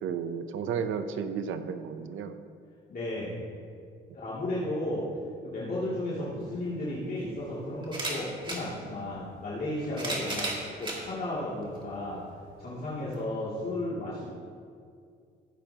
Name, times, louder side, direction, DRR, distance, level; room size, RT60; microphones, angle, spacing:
voice 1, 0.0-2.4, right 7 dB, 80° right, 9 dB, 0.7 m, -33 dB
voice 2, 2.9-3.4 4.1-5.1 5.4-12.2 12.6-14.3, left 1 dB, 50° left, -9 dB, 2.7 m, -34 dB
sound 1, 6.4-6.5 7.8-8.6 9.6-11.0 11.8-11.9 13.1-13.2, right 2 dB, 25° right, 2.5 m, -33 dB
15.0 x 8.9 x 2.9 m, 2.2 s
cardioid pair, 90°, 20 cm